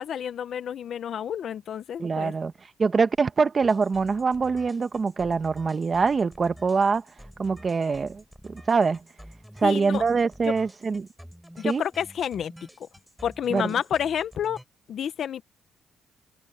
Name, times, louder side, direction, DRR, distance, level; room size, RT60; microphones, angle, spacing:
voice 1, 0.0-2.3 9.6-10.0 11.6-12.5 12.8-12.9 13.2-14.6 14.9-15.4, left 9 dB, 65° left, 1.1 m, -29 dB
voice 2, 2.0-2.5 2.8-7.0 7.4-9.0 9.6-11.1 11.6-11.8 13.5-13.7, right 5 dB, 35° right, 1.4 m, -24 dB
sound 1, 3.6-14.6, equal, ahead, 4.2 m, -49 dB
cardioid pair, 90°, 0 cm